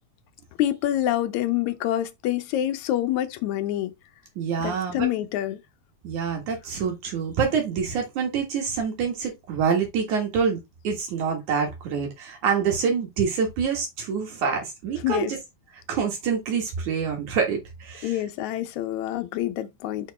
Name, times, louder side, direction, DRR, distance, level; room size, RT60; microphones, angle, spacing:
voice 1, 0.6-3.9 4.6-5.6 15.0-15.3 18.0-20.1, left 13 dB, 75° left, 2.0 m, -26 dB
voice 2, 4.4-5.1 6.0-15.4 15.9-18.2, right 6 dB, 75° right, 3.1 m, -26 dB
6.0 x 4.5 x 4.0 m
omnidirectional pair, 3.4 m